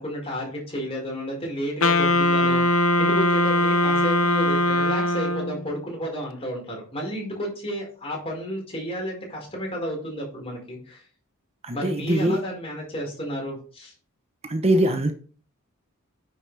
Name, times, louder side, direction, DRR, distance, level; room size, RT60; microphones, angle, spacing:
voice 1, 0.0-11.0 11.7-13.9, equal, 25° left, 4.7 m, -32 dB
Wind instrument woodwind instrument, 1.8-5.7, left 1 dB, 70° left, 0.9 m, -21 dB
voice 2, 11.6-12.4 14.4-15.1, right 1 dB, 30° right, 0.8 m, -22 dB
9.8 x 6.8 x 3.4 m
head